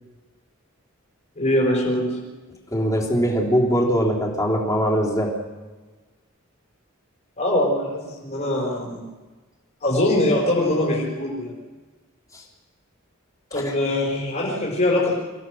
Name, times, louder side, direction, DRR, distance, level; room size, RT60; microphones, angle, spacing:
voice 1, 1.4-2.2 7.4-9.1 9.8-11.5 13.5-15.2, left 1 dB, 40° left, -3 dB, 4.6 m, -22 dB
voice 2, 2.7-5.3, equal, 15° left, -2 dB, 3.5 m, -21 dB
26.0 x 16.0 x 6.4 m, 1.3 s
head